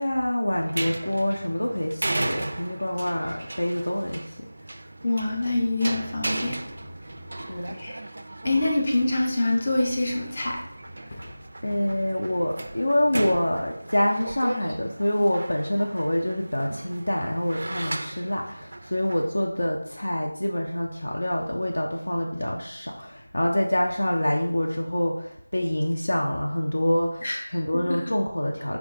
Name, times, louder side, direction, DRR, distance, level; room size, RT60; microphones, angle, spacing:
voice 1, 0.0-4.5 7.3-7.8 11.6-28.8, left 1 dB, 75° left, -1 dB, 0.6 m, -26 dB
sound 1, 0.5-19.3, right 2 dB, 50° right, 0.3 m, -36 dB
voice 2, 5.0-6.6 7.8-8.0 8.4-10.6 11.1-11.2 27.2-27.4 27.9-28.0, left 2 dB, 30° left, -1 dB, 0.7 m, -25 dB
4.5 x 2.1 x 3.9 m, 0.70 s
figure-of-eight pair, 175°, 0 cm